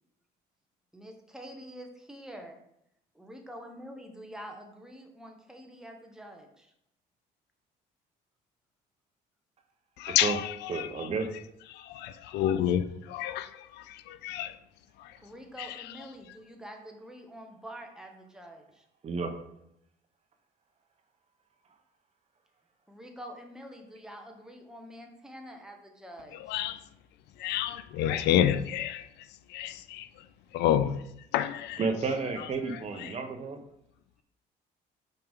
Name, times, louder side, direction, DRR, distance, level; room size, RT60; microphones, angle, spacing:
voice 1, 0.9-2.6 3.1-6.7 15.2-18.8 22.9-26.5, equal, 5° right, 1.1 m, -46 dB
voice 2, 10.0-11.1 11.7-14.6 15.0-15.2 15.6-16.0 26.3-26.8 27.4-30.3 30.5-31.0 31.3-31.8 32.4-33.2, left 11 dB, 85° left, 0.5 m, -30 dB
voice 3, 10.7-11.3 19.0-19.3 31.8-33.6, right 4 dB, 40° right, 0.9 m, -31 dB
5.7 x 5.2 x 3.7 m
cardioid pair, 110°, 17 cm